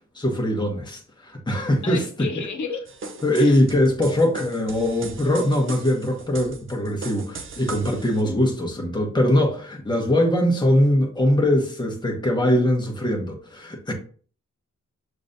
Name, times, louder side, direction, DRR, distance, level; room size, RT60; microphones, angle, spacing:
voice 1, 0.1-2.0 2.4-2.5 3.2-13.9, left 1 dB, 15° left, 1.0 m, -21 dB
voice 2, 1.8-2.8 3.3-3.6, left 5 dB, 75° left, 0.9 m, -32 dB
sound 1, 2.9-8.2, right 4 dB, 45° right, 0.5 m, -39 dB
6.5 x 3.1 x 2.6 m
wide cardioid pair, 145°, 30 cm